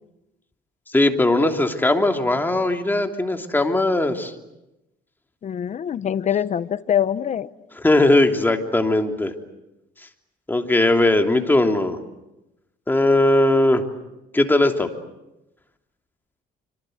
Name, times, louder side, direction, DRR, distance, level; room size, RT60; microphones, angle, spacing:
voice 1, 0.9-4.3 7.8-9.3 10.5-12.0 12.9-13.8 14.3-14.9, left 2 dB, 10° left, 3.1 m, -19 dB
voice 2, 5.4-7.5, left 9 dB, 45° left, 1.1 m, -24 dB
28.0 x 25.5 x 8.0 m
cardioid pair, 110°, 17 cm